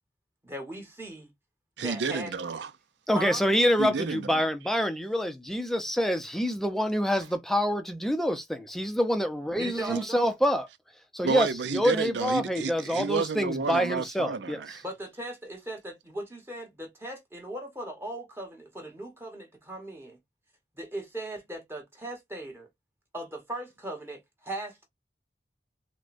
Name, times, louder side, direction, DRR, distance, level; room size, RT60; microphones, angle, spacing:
voice 1, 0.4-1.3 1.8-2.3 3.1-3.4 9.6-10.3 14.8-20.2 20.7-22.7 23.1-24.8, right 1 dB, 15° right, 1.0 m, -38 dB
voice 2, 1.8-2.7 3.8-4.4 9.9-10.0 11.2-14.8, right 5 dB, 80° right, 0.5 m, -31 dB
voice 3, 3.1-10.7 11.1-14.6, equal, ahead, 0.5 m, -26 dB
6.1 x 2.2 x 2.5 m
head